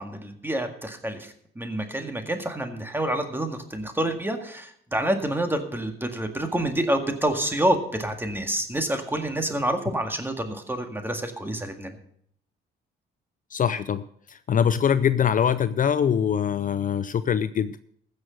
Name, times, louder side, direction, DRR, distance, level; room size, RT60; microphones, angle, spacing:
voice 1, 0.0-12.0, right 1 dB, 10° right, 5 dB, 1.9 m, -28 dB
voice 2, 13.5-14.0 14.5-17.8, left 8 dB, 45° left, 14 dB, 0.5 m, -23 dB
15.5 x 6.5 x 6.4 m, 0.66 s
cardioid pair, 90°, 20 cm